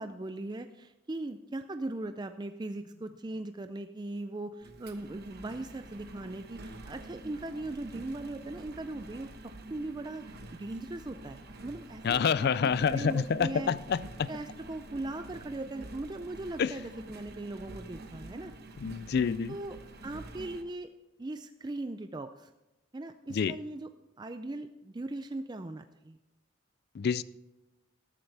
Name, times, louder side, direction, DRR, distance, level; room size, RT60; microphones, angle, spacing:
voice 1, 0.0-9.3 9.7-10.2 10.6-13.7 14.3-18.5 19.5-19.8 20.0-20.9 21.2-22.5 22.9-23.9 24.2-26.2, right 2 dB, 20° right, 8 dB, 0.4 m, -39 dB
Engine, 4.6-20.6, right 2 dB, 50° right, 1.1 m, -47 dB
voice 2, 12.0-14.3 16.6-16.7 18.8-19.5 23.3-23.6 26.9-27.2, left 6 dB, 50° left, 17 dB, 0.3 m, -28 dB
13.5 x 13.0 x 3.4 m, 0.99 s
head